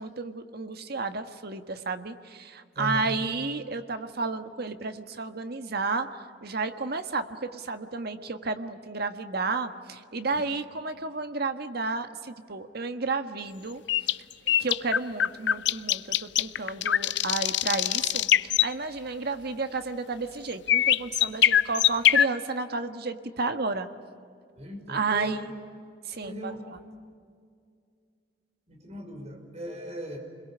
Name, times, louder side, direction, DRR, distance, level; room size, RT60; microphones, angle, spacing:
voice 1, 0.0-14.1 14.6-23.9 24.9-25.4 26.1-26.8, right 3 dB, 60° right, 8 dB, 1.5 m, -32 dB
voice 2, 2.7-3.1 10.3-10.5 24.6-25.4 26.2-26.6 28.7-30.2, equal, 35° right, 3 dB, 5.6 m, -38 dB
sound 1, 13.9-18.7 20.7-22.2, left 11 dB, 70° left, 0.6 m, -23 dB
29.5 x 22.0 x 8.7 m, 2.3 s
head